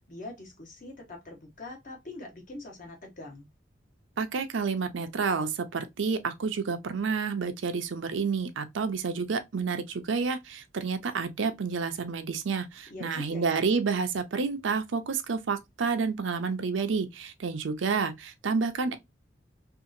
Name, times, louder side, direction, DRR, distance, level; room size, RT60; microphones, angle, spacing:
voice 1, 0.1-3.5 12.9-13.5, left 2 dB, 45° left, 1.1 m, -43 dB
voice 2, 4.2-19.0, right 5 dB, 90° right, 0.5 m, -29 dB
2.8 x 2.4 x 2.5 m
head